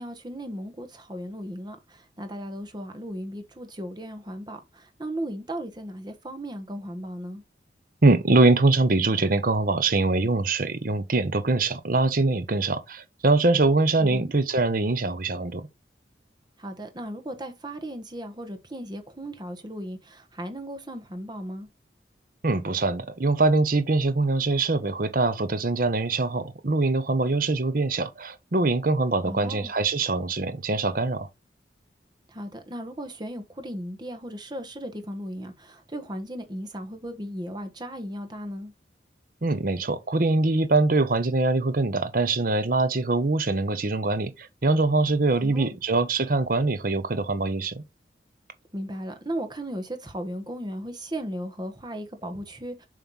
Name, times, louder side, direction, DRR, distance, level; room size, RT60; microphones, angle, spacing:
voice 1, 0.0-7.4 14.0-14.3 16.6-21.7 29.2-29.7 32.3-38.7 45.4-45.7 48.7-52.9, equal, 25° right, 1.2 m, -36 dB
voice 2, 8.0-15.7 22.4-31.3 39.4-47.8, right 3 dB, 50° right, 0.8 m, -23 dB
7.2 x 3.2 x 5.4 m
head